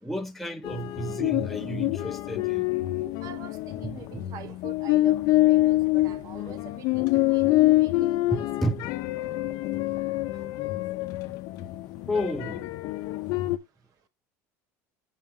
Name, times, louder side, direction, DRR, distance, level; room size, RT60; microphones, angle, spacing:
voice 1, 0.0-2.7 8.3-8.9 12.1-12.7, equal, ahead, 0.7 m, -31 dB
sound 1, 0.6-13.6, left 17 dB, 65° left, 0.6 m, -26 dB
voice 2, 3.2-8.8, right 7 dB, 55° right, 1.4 m, -45 dB
6.0 x 5.7 x 3.6 m
supercardioid pair, 120°, 7 cm